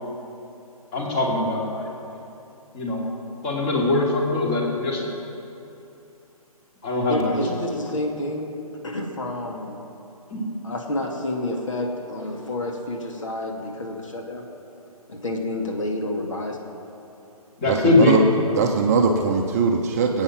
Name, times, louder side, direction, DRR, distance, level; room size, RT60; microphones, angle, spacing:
voice 1, 0.9-1.9 2.7-3.0 3.4-5.1 6.8-7.4 10.3-10.4 17.6-18.2 19.1-19.2, left 3 dB, 20° left, -2 dB, 2.7 m, -22 dB
voice 2, 7.1-8.5 8.8-9.8 10.6-14.4 15.1-16.6, left 1 dB, 55° left, 1 dB, 2.5 m, -29 dB
voice 3, 17.7-18.2 18.5-20.2, right 5 dB, 25° right, 2 dB, 0.9 m, -21 dB
21.5 x 8.9 x 6.1 m, 2.8 s
figure-of-eight pair, 140°, 19 cm